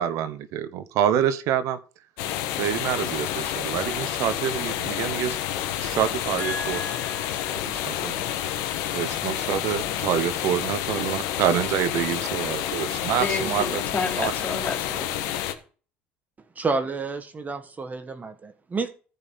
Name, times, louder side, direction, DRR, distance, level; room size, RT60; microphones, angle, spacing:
voice 1, 0.0-1.8 2.6-5.4 5.8-6.8 7.6-8.1 8.9-13.8 14.2-14.3, right 10 dB, 65° right, 12 dB, 0.9 m, -26 dB
sound 1, 2.2-15.5, left 11 dB, 70° left, 1.5 m, -29 dB
voice 2, 6.4-7.6 13.2-15.1, left 3 dB, 30° left, 2 dB, 3.6 m, -31 dB
voice 3, 16.5-18.3 18.7-18.9, right 4 dB, 30° right, 8 dB, 1.5 m, -29 dB
14.0 x 5.7 x 5.9 m, 0.39 s
hypercardioid pair, 70°, 6 cm